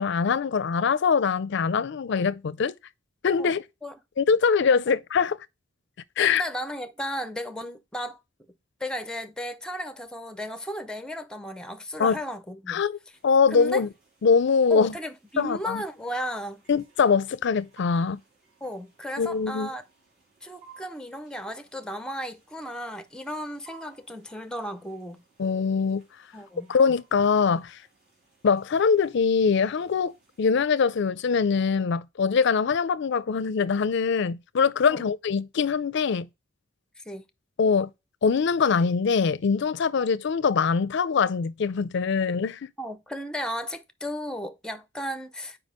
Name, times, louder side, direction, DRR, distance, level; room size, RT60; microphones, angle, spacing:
voice 1, 0.0-2.8 3.2-3.6 4.2-5.4 6.2-6.4 12.0-12.2 12.7-13.0 13.2-13.9 14.2-14.9 15.4-15.8 16.7-18.2 19.2-19.7 25.4-26.0 26.7-27.8 28.4-36.3 37.6-37.9 38.2-42.7, left 5 dB, 60° left, 0.4 m, -23 dB
voice 2, 6.2-8.2 8.8-12.8 13.5-13.9 14.7-16.6 18.6-19.9 20.4-25.2 26.3-26.7 34.9-35.1 37.0-37.2 42.8-45.6, equal, 5° left, 0.6 m, -35 dB
sound 1, 13.1-30.5, right 6 dB, 50° right, 3.6 m, -58 dB
5.2 x 4.8 x 5.1 m
head